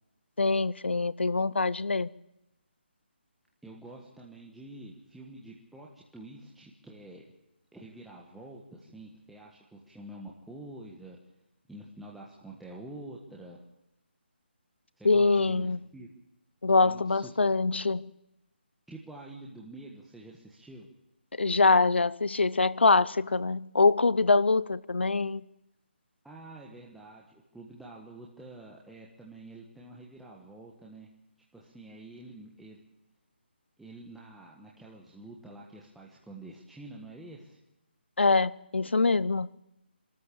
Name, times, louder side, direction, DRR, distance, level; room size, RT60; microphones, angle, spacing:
voice 1, 0.4-2.1 15.0-15.8 16.6-18.1 21.4-25.4 38.2-39.5, left 3 dB, 90° left, 0.8 m, -24 dB
voice 2, 3.6-7.2 7.7-11.2 11.7-13.6 15.0-16.1 16.8-17.3 18.9-20.9 26.2-31.1 31.5-32.8 33.8-37.6, right 2 dB, ahead, 1.5 m, -47 dB
26.5 x 13.5 x 8.7 m
hypercardioid pair, 165°, 6 cm